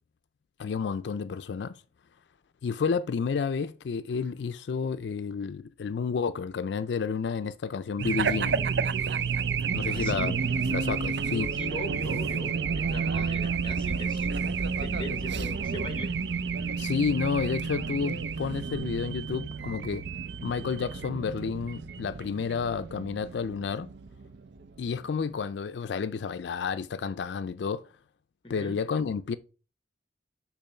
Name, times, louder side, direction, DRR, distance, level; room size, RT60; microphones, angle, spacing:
voice 1, 0.6-1.8 2.6-8.6 9.0-9.1 9.7-10.4 10.7-11.5 16.8-20.1 20.4-23.9 24.8-27.9 28.5-29.4, left 5 dB, 85° left, 0.4 m, -30 dB
Race car auto racing / Alarm, 8.0-24.9, right 5 dB, 80° right, 0.5 m, -30 dB
voice 2, 9.9-10.3 11.5-14.3 14.8-16.2 28.4-28.8, left 1 dB, 25° left, 0.9 m, -40 dB
6.8 x 3.1 x 5.5 m
head